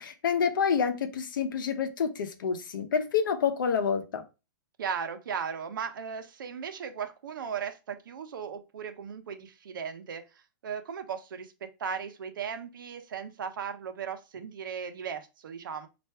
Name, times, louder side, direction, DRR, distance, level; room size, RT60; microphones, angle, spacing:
voice 1, 0.0-4.2, left 6 dB, 80° left, 0.7 m, -28 dB
voice 2, 4.8-15.9, right 7 dB, 85° right, 0.8 m, -37 dB
3.3 x 2.6 x 4.5 m
supercardioid pair, 180°, 11 cm